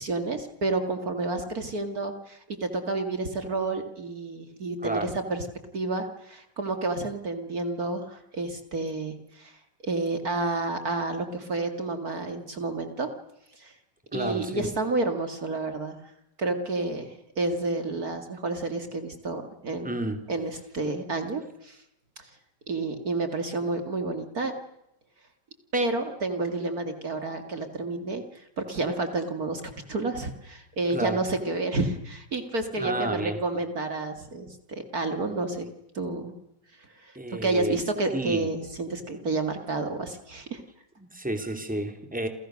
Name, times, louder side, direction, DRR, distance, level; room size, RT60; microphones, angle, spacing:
voice 1, 0.0-5.5 5.7-13.1 13.6-13.7 14.1-16.0 16.4-20.0 20.3-21.8 22.2-22.3 22.7-24.5 25.7-35.7 35.9-36.3 36.8-40.6, right 3 dB, 55° right, 7 dB, 2.5 m, -30 dB
voice 2, 4.8-5.1 14.1-14.7 19.8-20.2 30.9-31.2 32.8-33.4 37.1-37.8 38.1-38.5 41.0-42.3, right 1 dB, 5° right, 6 dB, 3.1 m, -31 dB
29.0 x 29.0 x 6.4 m, 0.83 s
omnidirectional pair, 2.0 m